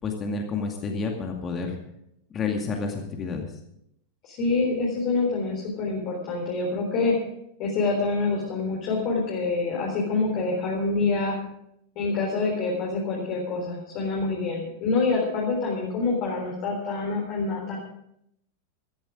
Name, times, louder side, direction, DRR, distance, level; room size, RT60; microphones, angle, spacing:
voice 1, 0.0-1.8 2.3-3.5, left 4 dB, 25° left, 2 dB, 2.2 m, -29 dB
voice 2, 4.2-7.2 7.6-11.4 12.0-17.8, left 3 dB, 40° left, -2 dB, 3.7 m, -26 dB
15.0 x 13.5 x 5.0 m, 0.77 s
figure-of-eight pair, 90°, 0 cm